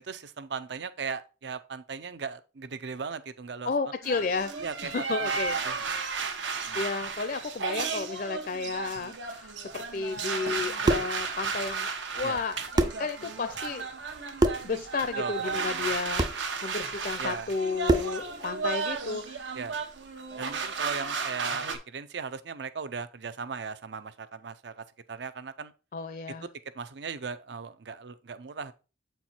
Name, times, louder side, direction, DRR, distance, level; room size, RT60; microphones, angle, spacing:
voice 1, 0.0-3.9 4.6-4.9 5.2-5.3 5.6-5.8 6.6-6.8 12.2-12.4 15.2-15.9 17.2-17.5 19.5-19.8 20.4-25.7 26.4-26.5 26.7-28.7, right 5 dB, 70° right, 0.6 m, -38 dB
voice 2, 3.7-4.5 4.8-5.6 6.5-11.9 12.1-12.6 13.0-13.9 14.6-19.5 25.9-26.5, left 4 dB, 50° left, 0.5 m, -32 dB
sound 1, 4.0-21.8, right 5 dB, 85° right, 1.1 m, -34 dB
sound 2, 10.6-11.2 12.4-12.5 12.8-13.1 14.4-14.7 16.2-16.4 17.9-18.2, right 2 dB, 20° right, 0.5 m, -25 dB
7.9 x 4.5 x 4.3 m
head